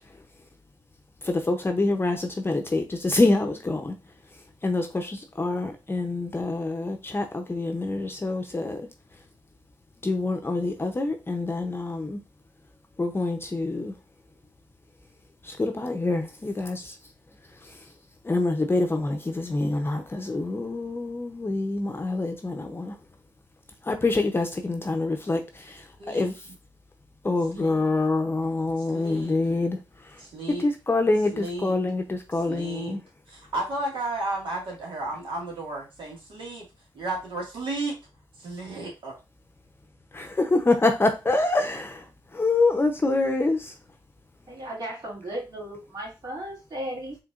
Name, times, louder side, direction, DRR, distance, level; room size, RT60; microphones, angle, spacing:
voice 1, 1.2-4.0 4.6-8.9 10.0-12.2 13.0-13.9 15.4-17.0 17.6-17.9 18.2-23.0 23.8-26.3 27.2-30.2 30.6-33.0 40.1-43.7, left 2 dB, 25° left, 5 dB, 0.6 m, -26 dB
voice 2, 27.5-27.9 28.8-29.3 30.2-30.7 31.3-31.7 32.5-33.0 33.3-36.7 36.9-38.0 38.4-39.2, right 2 dB, 80° right, -1 dB, 1.8 m, -33 dB
voice 3, 44.5-47.2, right 1 dB, 55° right, -3 dB, 2.4 m, -35 dB
4.8 x 3.2 x 2.5 m, 0.27 s
cardioid pair, 65°, 8 cm